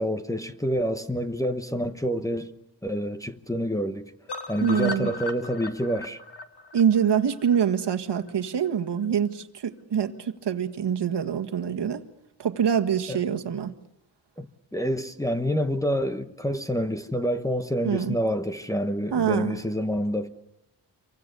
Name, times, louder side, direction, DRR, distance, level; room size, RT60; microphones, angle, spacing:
voice 1, 0.0-2.6 2.8-4.1 4.5-6.2 13.1-13.2 14.4-14.5 14.7-20.3, equal, 10° left, 1.1 m, -27 dB
sound 1, 4.3-8.3 8.6-8.7 9.0-9.1 9.4-9.5, left 3 dB, 65° left, 2.0 m, -37 dB
voice 2, 4.6-5.1 6.7-12.0 12.4-13.7 17.8-18.2 19.1-19.5, right 8 dB, 70° right, 1.7 m, -25 dB
28.0 x 24.0 x 6.9 m
wide cardioid pair, 175°, 43 cm